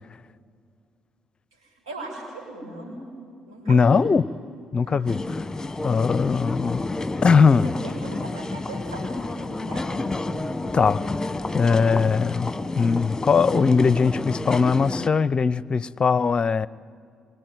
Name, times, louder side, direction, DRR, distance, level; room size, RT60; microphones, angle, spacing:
voice 1, 1.6-3.0 3.4-4.1 4.7-5.1 7.6-10.1, right 2 dB, 85° right, 6.6 m, -38 dB
voice 2, 3.7-4.2 4.7-5.4 5.8-6.9 7.2-7.7 10.7-12.5 12.8-16.7, left 5 dB, 40° left, 0.7 m, -20 dB
sound 1, 5.1-15.1, left 2 dB, 20° left, 1.7 m, -30 dB
26.0 x 24.5 x 9.4 m
hypercardioid pair, 45°, 3 cm